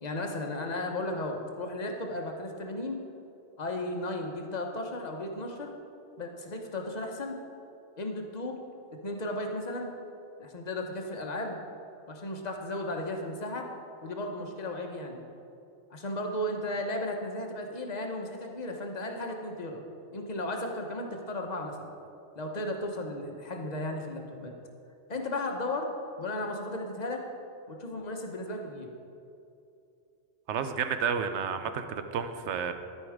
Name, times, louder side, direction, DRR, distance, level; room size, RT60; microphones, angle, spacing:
voice 1, 0.0-3.0 3.6-5.8 6.2-7.4 8.0-8.6 9.0-9.9 10.4-11.6 12.1-13.7 14.0-15.2 15.9-19.8 20.1-21.9 22.3-24.6 25.1-25.9 26.2-27.2 27.7-28.9, left 1 dB, 40° left, 2 dB, 1.0 m, -35 dB
voice 2, 30.5-32.7, right 7 dB, 80° right, 9 dB, 0.9 m, -31 dB
12.5 x 5.5 x 4.9 m, 2.7 s
omnidirectional pair, 1.2 m